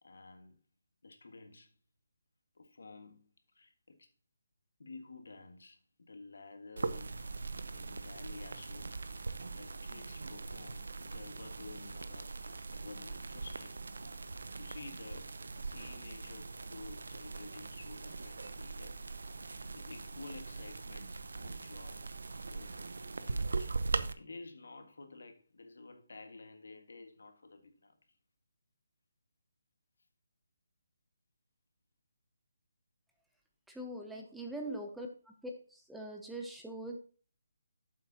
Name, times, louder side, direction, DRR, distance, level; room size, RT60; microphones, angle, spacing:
voice 1, 0.0-0.6 1.0-1.7 2.6-3.3 3.5-4.1 4.8-7.2 7.7-13.8 14.1-14.3 14.6-19.0 19.4-22.1 22.5-22.7 23.2-28.0 34.1-34.3 34.8-34.9, left 3 dB, 80° left, 1.7 m, -52 dB
sound 1, 6.8-24.1, right 3 dB, 85° right, 0.7 m, -41 dB
voice 2, 33.7-35.1 35.7-37.0, right 1 dB, ahead, 0.6 m, -42 dB
9.3 x 7.3 x 2.8 m
hypercardioid pair, 170°, 0 cm